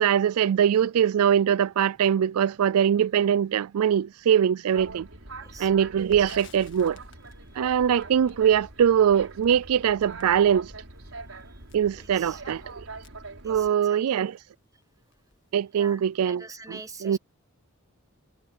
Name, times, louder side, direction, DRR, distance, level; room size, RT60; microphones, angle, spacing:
voice 1, 0.0-5.1 5.6-7.0 7.6-10.7 11.7-12.9 13.4-14.4 15.5-17.2, right 8 dB, 90° right, 0.4 m, -22 dB
Boat Water vehicle, 4.7-13.7, right 3 dB, 65° right, 5.5 m, -43 dB
voice 2, 5.4-5.7 11.4-11.6 12.0-12.6 13.4-14.2 15.7-17.2, right 3 dB, 15° right, 1.3 m, -46 dB
Crackle, 6.0-14.0 14.4-14.5 14.8-15.6, left 4 dB, 55° left, 1.8 m, -54 dB
head